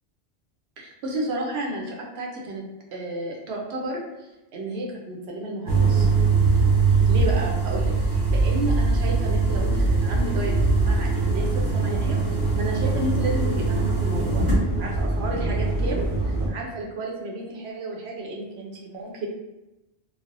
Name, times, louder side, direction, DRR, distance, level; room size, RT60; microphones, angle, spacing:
voice 1, 0.8-2.6 2.9-6.1 6.9-14.4 14.8-19.3, right 1 dB, 70° right, -1 dB, 0.9 m, -32 dB
sound 1, 5.7-16.5, right 3 dB, 25° right, 0.6 m, -22 dB
3.2 x 2.0 x 2.5 m, 0.99 s
omnidirectional pair, 1.2 m